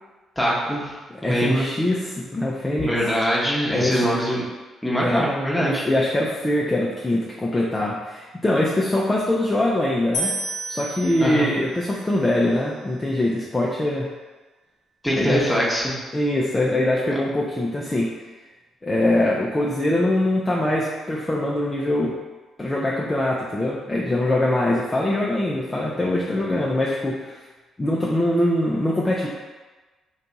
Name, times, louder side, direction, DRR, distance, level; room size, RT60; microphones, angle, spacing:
voice 1, 0.4-0.9 1.3-1.6 2.8-4.4 4.8-5.8 11.2-11.5 15.0-15.9, equal, 5° left, -6 dB, 0.9 m, -22 dB
voice 2, 1.2-2.9 3.7-4.0 5.0-5.2 5.6-10.3 10.7-14.1 15.1-15.5 16.1-18.1 18.8-22.1 22.6-27.4 27.8-29.3, left 1 dB, 20° left, -4 dB, 0.4 m, -23 dB
sound 1, 10.1-13.4, right 1 dB, 70° left, 0.6 m, -33 dB
2.6 x 2.3 x 3.9 m, 1.2 s
cardioid pair, 90°, 0 cm